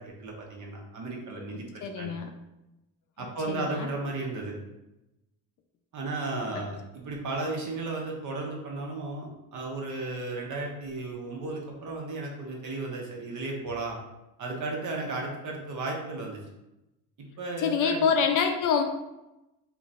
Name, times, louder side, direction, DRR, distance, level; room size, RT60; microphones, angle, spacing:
voice 1, 0.0-2.1 3.2-4.6 5.9-14.0 14.4-16.4 17.2-18.0, right 2 dB, 45° right, 0 dB, 0.9 m, -34 dB
voice 2, 1.8-2.3 3.5-3.9 6.5-6.6 17.6-18.8, left 6 dB, 50° left, 5 dB, 0.4 m, -26 dB
3.8 x 2.3 x 2.5 m, 0.95 s
supercardioid pair, 80°, 42 cm